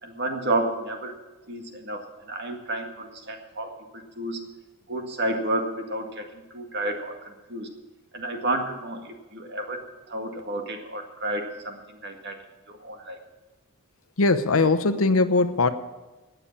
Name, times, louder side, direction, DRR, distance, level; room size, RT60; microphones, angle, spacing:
voice 1, 0.0-1.1 1.5-4.5 4.9-7.7 8.1-9.8 10.1-12.3 12.7-13.2, right 1 dB, 50° right, 4 dB, 2.0 m, -31 dB
voice 2, 14.2-15.7, left 3 dB, 75° left, 9 dB, 0.9 m, -20 dB
18.5 x 7.0 x 7.4 m, 1.2 s
head